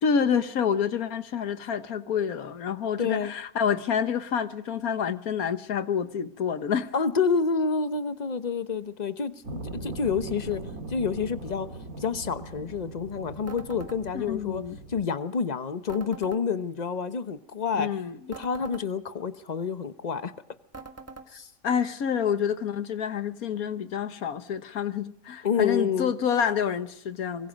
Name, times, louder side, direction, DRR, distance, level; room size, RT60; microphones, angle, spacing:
voice 1, 0.0-6.9 14.1-14.8 17.8-18.2 21.6-27.5, left 7 dB, 80° left, 1.6 m, -28 dB
voice 2, 3.0-3.3 6.9-10.6 10.9-11.7 12.0-14.6 14.9-17.9 18.3-20.3 21.3-21.5 25.4-26.1, left 5 dB, 35° left, 1.0 m, -28 dB
sound 1, 9.4-15.0, right 2 dB, 75° right, 2.5 m, -40 dB
sound 2, 13.5-14.0 15.9-16.4 18.3-18.9 20.7-21.3, right 3 dB, 10° right, 1.4 m, -43 dB
25.0 x 23.0 x 5.3 m
omnidirectional pair, 1.5 m